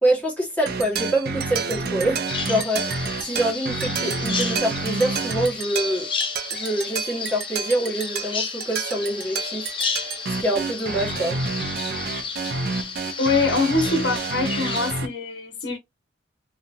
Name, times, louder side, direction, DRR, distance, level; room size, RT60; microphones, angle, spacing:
voice 1, 0.0-6.1 6.5-11.4, right 1 dB, 10° left, 1.3 m, -26 dB
sound 1, 0.7-15.1, right 4 dB, 55° right, 0.5 m, -29 dB
Bird vocalization bird call bird song, 2.3-14.9, left 5 dB, 25° left, 0.5 m, -32 dB
voice 2, 13.2-15.8, left 3 dB, 60° left, 0.7 m, -23 dB
2.7 x 2.3 x 2.6 m
head